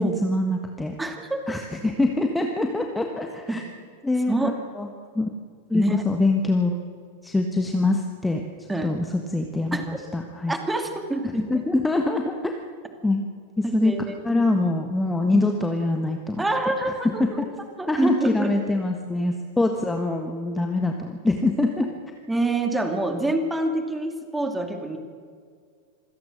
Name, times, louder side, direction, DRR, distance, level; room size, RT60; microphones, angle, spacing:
voice 1, 0.0-0.9 1.5-3.6 4.0-4.3 4.8-4.9 5.1-5.3 5.7-6.8 7.2-8.4 8.8-10.5 11.5-12.5 13.0-13.2 13.6-13.9 14.2-16.4 17.2-17.5 17.9-21.9, left 2 dB, 10° left, 4 dB, 1.4 m, -24 dB
voice 2, 1.0-1.4 3.5-3.6 4.3-4.5 5.7-6.0 8.7-8.9 9.7-9.8 10.5-11.4 13.6-14.5 16.4-17.5 17.8-18.5 22.3-25.0, right 2 dB, 10° right, 5 dB, 2.5 m, -26 dB
26.0 x 17.5 x 6.5 m, 2.1 s
figure-of-eight pair, 90°, 0 cm